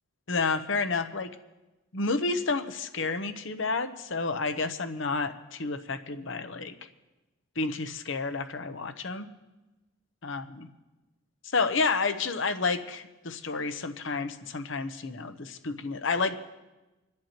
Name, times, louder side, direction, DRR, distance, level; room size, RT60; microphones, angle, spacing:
voice 1, 0.3-1.3 1.9-6.9 7.6-9.3 10.2-10.7 11.4-16.4, left 4 dB, 60° left, 9 dB, 0.8 m, -30 dB
28.0 x 10.5 x 3.0 m, 1.1 s
head